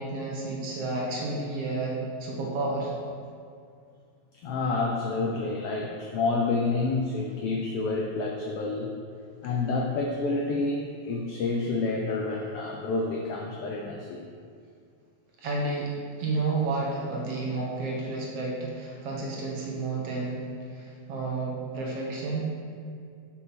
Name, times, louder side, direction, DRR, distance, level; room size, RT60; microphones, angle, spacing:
voice 1, 0.0-2.9 15.4-15.9 16.2-20.4 20.7-22.5, right 3 dB, 60° right, -3 dB, 2.1 m, -31 dB
voice 2, 4.3-8.9 9.4-14.2, left 3 dB, 85° left, 1 dB, 1.3 m, -29 dB
6.2 x 5.6 x 5.9 m, 2.3 s
omnidirectional pair, 3.4 m